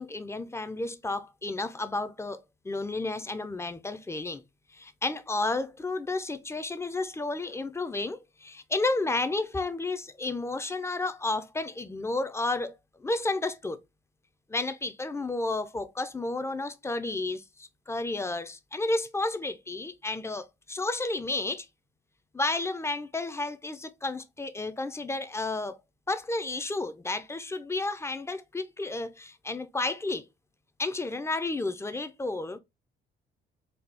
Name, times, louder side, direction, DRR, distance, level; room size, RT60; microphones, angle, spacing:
voice 1, 0.0-4.4 4.7-13.8 14.5-21.7 22.3-25.8 26.1-30.3 30.8-32.6, left 2 dB, 15° left, 0.5 m, -32 dB
4.2 x 2.3 x 3.3 m
cardioid pair, 90°, 20 cm